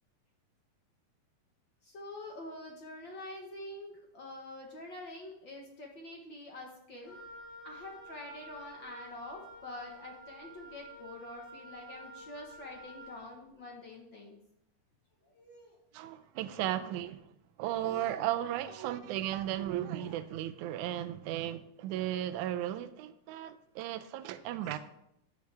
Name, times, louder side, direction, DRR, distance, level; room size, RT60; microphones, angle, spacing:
voice 1, 1.8-7.2 7.6-14.4 15.2-15.8 17.8-18.1 18.8-18.9 19.9-20.1 24.2-24.3 24.6-24.8, left 1 dB, 55° left, 1.3 m, -46 dB
Wind instrument woodwind instrument, 7.0-13.3, right 1 dB, 85° left, 6.7 m, -50 dB
voice 2, 15.9-17.3 17.6-24.8, right 12 dB, 80° right, 1.8 m, -35 dB
11.5 x 9.6 x 3.4 m
omnidirectional pair, 4.0 m